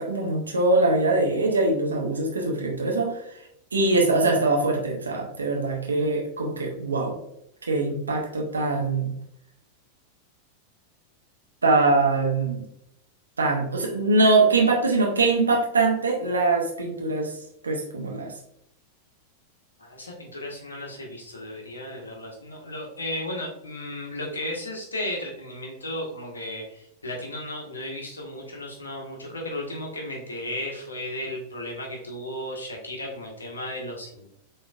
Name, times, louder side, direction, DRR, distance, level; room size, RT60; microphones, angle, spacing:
voice 1, 0.0-3.2 3.7-7.2 7.7-9.1 11.6-12.6 13.4-17.3 17.6-18.3, right 3 dB, 75° right, 0 dB, 1.1 m, -22 dB
voice 2, 19.8-34.4, left 1 dB, 75° left, 0 dB, 1.3 m, -35 dB
6.5 x 3.2 x 2.5 m, 0.77 s
figure-of-eight pair, 90°, 0 cm